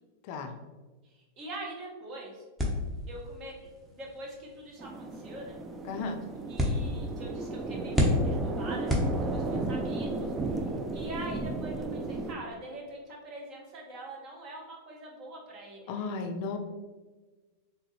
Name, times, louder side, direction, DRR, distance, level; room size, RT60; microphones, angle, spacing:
voice 1, 1.0-2.4 3.1-3.5 3.9-5.5 6.4-16.1, right 1 dB, 40° right, -1 dB, 1.1 m, -44 dB
sound 1, 2.6-9.7, left 1 dB, 5° right, 0.8 m, -32 dB
sound 2, 4.8-12.3, right 3 dB, 20° right, 0.4 m, -34 dB
voice 2, 5.8-6.2 15.9-16.6, left 4 dB, 50° left, 6 dB, 0.4 m, -34 dB
3.7 x 2.7 x 3.1 m, 1.3 s
hypercardioid pair, 95°, 0 cm